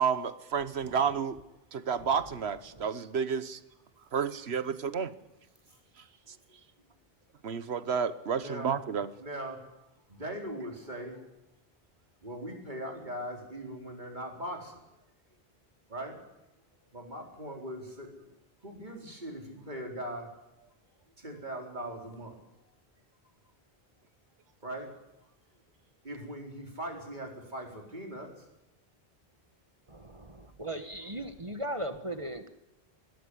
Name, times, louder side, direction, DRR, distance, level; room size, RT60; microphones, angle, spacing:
voice 1, 0.0-1.4 1.7-3.6 4.1-5.1 6.3-6.4 7.4-9.1, right 6 dB, 85° right, 14 dB, 1.4 m, -30 dB
voice 2, 8.4-8.8 9.2-9.7 10.1-11.2 12.2-14.8 15.9-16.2 16.9-18.1 18.6-20.3 20.6-20.7 21.2-22.4 24.6-24.9 26.0-28.5, right 1 dB, 50° right, 2 dB, 4.5 m, -40 dB
voice 3, 29.9-32.5, right 1 dB, 30° right, 9 dB, 1.4 m, -38 dB
20.5 x 13.0 x 10.0 m, 0.92 s
omnidirectional pair, 1.0 m